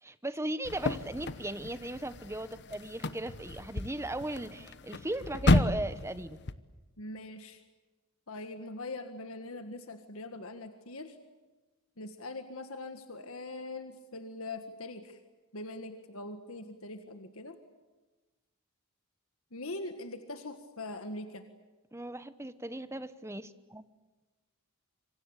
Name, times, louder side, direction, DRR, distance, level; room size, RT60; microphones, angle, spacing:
voice 1, 0.0-6.4 21.9-23.8, right 1 dB, 10° right, 13 dB, 1.1 m, -37 dB
sound 1, 0.6-6.5, left 2 dB, 50° left, 1.1 m, -32 dB
voice 2, 7.0-7.6 8.3-11.2 12.0-15.2 15.5-17.6 19.5-21.4, left 2 dB, 70° left, 7 dB, 1.8 m, -42 dB
27.0 x 25.0 x 8.3 m, 1.2 s
head